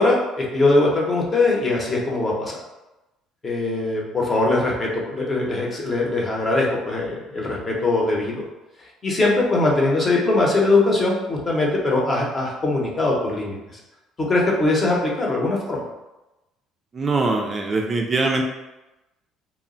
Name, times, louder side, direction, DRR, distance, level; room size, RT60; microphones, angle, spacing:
voice 1, 0.0-2.6 3.4-8.4 9.0-13.8 14.2-15.8, left 2 dB, 30° left, -2 dB, 0.8 m, -21 dB
voice 2, 16.9-18.4, right 3 dB, 35° right, 1 dB, 0.3 m, -22 dB
2.2 x 2.0 x 3.8 m, 1.0 s
supercardioid pair, 90°, 0 cm